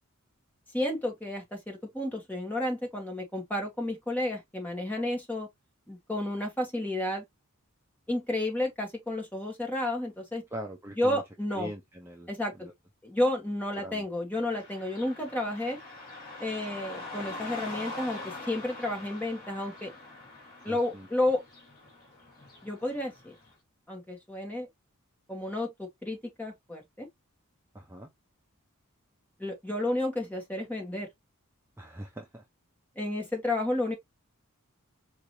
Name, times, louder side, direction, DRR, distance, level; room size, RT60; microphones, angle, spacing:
voice 1, 0.7-5.5 5.9-7.2 8.1-10.4 11.0-11.7 12.3-12.5 13.0-15.8 16.4-19.9 20.6-21.4 22.6-23.3 23.9-24.7 25.3-27.1 29.4-31.1 33.0-33.9, left 1 dB, 10° left, 1.5 m, -31 dB
voice 2, 10.5-11.2 11.5-12.3 12.6-12.7 13.7-14.0 20.7-21.1 27.7-28.1 31.8-32.4, equal, 10° right, 0.6 m, -41 dB
Car passing by / Traffic noise roadway noise, 14.5-23.5, left 2 dB, 45° left, 2.0 m, -44 dB
4.7 x 3.2 x 2.7 m
head